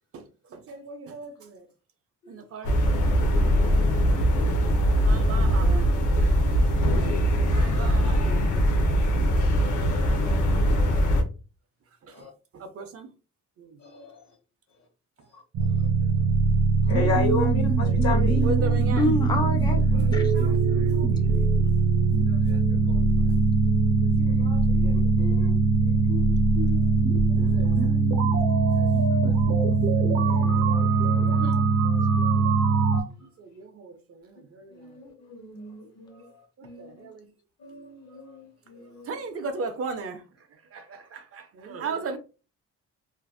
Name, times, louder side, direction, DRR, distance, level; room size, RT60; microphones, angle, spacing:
voice 1, 0.1-1.7 2.3-2.8 3.1-3.3 4.7-5.9 6.3-6.5 7.3-8.6 9.6-10.3 12.0-12.3 12.5-13.1 13.6-13.8 15.6-16.1 17.8-19.0 19.9-21.4 22.2-23.3 24.0-25.5 27.3-29.7 31.3-31.6 33.2-34.9 36.6-37.3 39.0-40.2 40.5-42.2, right 4 dB, 50° right, 0.5 m, -39 dB
sound 1, 2.6-11.2, equal, 75° left, 0.6 m, -22 dB
voice 2, 4.3-4.9 12.1-12.3 13.8-14.2 15.3-15.4 16.8-18.5 24.3-25.5 25.8-27.0 27.4-27.5 28.8-28.9 30.2-31.6 33.1-33.3 34.7-37.1 37.6-39.2, left 3 dB, 60° left, 1.1 m, -35 dB
voice 3, 6.1-6.7 7.0-7.4 19.0-19.8 20.1-20.3, left 2 dB, 15° left, 0.5 m, -28 dB
sound 2, 15.5-33.0, right 4 dB, 90° right, 0.7 m, -21 dB
2.5 x 2.3 x 2.3 m
cardioid pair, 90°, 30 cm